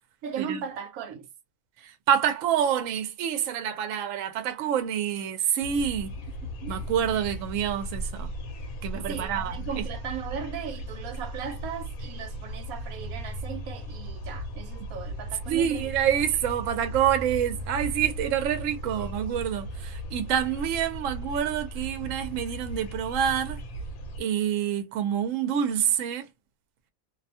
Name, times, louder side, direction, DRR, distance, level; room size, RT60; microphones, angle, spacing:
voice 1, 0.2-1.3 6.6-6.7 8.9-15.9, right 7 dB, 90° right, 1.1 m, -37 dB
voice 2, 1.8-6.1 6.7-8.3 8.8-9.8 15.5-23.6 24.2-26.3, right 9 dB, 70° right, 0.9 m, -27 dB
sound 1, 5.6-24.2, right 1 dB, 80° left, 1.1 m, -37 dB
2.6 x 2.1 x 2.7 m
omnidirectional pair, 1.5 m